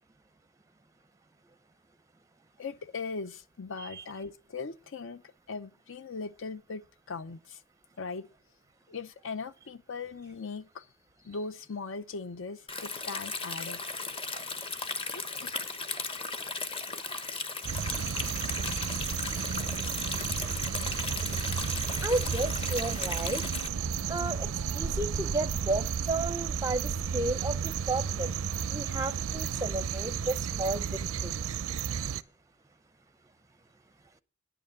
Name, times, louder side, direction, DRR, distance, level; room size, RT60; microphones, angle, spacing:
voice 1, 2.6-5.2 5.5-7.6 8.0-8.3 8.9-10.9 11.2-13.8 14.8-15.6, left 4 dB, 65° left, 0.6 m, -39 dB
Stream, 12.7-23.7, left 3 dB, 25° left, 1.0 m, -36 dB
sound 1, 17.6-32.2, right 7 dB, 85° right, 0.5 m, -33 dB
voice 2, 22.0-23.5 24.1-28.3 28.7-31.5, right 2 dB, 15° right, 0.5 m, -33 dB
9.9 x 9.1 x 8.5 m
head